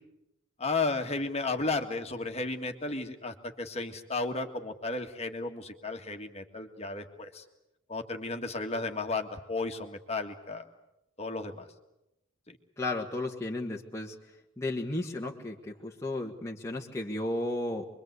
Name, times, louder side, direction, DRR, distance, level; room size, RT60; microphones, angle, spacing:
voice 1, 0.6-7.4 7.9-10.7 11.2-11.7 12.5-12.6, left 3 dB, 30° left, 4 dB, 1.9 m, -34 dB
voice 2, 12.8-14.2 14.6-17.9, left 2 dB, 15° left, -2 dB, 1.6 m, -34 dB
26.0 x 23.0 x 8.2 m, 0.89 s
head